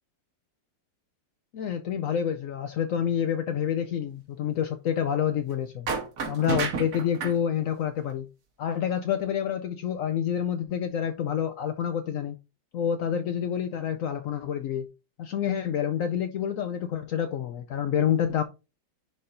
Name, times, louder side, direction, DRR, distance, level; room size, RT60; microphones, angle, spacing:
voice 1, 1.5-5.9 6.3-8.3 8.6-12.4 12.7-14.9 15.2-18.4, left 9 dB, 85° left, 8 dB, 0.7 m, -28 dB
sound 1, 5.9-7.4, right 4 dB, 55° right, 1.4 m, -30 dB
10.5 x 4.3 x 2.6 m, 0.29 s
omnidirectional pair, 1.9 m